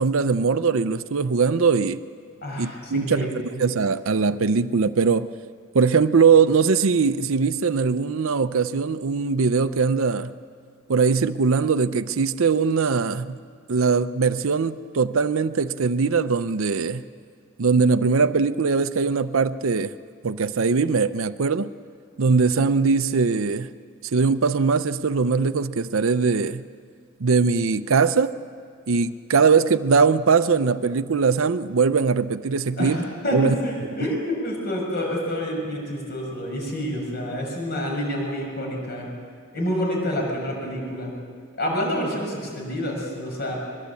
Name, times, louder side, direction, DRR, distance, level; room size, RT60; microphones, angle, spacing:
voice 1, 0.0-2.0 2.6-5.3 5.7-10.3 10.9-13.4 13.7-17.0 17.6-19.9 20.2-21.7 22.2-23.7 24.1-26.6 27.2-28.3 28.9-33.0 33.3-33.6, right 5 dB, 65° right, 0.6 m, -21 dB
voice 2, 2.4-3.3 32.8-39.1 39.5-41.1 41.5-43.6, equal, 50° left, 6.5 m, -28 dB
22.5 x 22.0 x 8.4 m
head